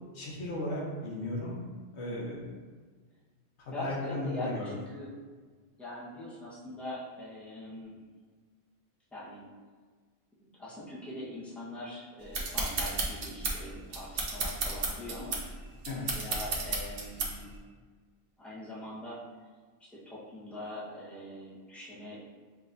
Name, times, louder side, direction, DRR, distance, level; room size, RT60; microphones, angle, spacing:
voice 1, 0.1-1.6 1.9-2.5 3.6-4.7 15.9-16.1, left 1 dB, 85° left, -4 dB, 1.3 m, -36 dB
voice 2, 2.1-2.4 3.7-5.1 5.8-8.0 9.1-9.4 10.4-15.4 16.0-17.5 18.4-19.2 19.9-22.2, left 1 dB, ahead, -9 dB, 1.1 m, -42 dB
sound 1, 12.3-17.6, right 3 dB, 60° right, 0.9 m, -33 dB
6.1 x 3.1 x 2.6 m, 1.5 s
omnidirectional pair, 1.1 m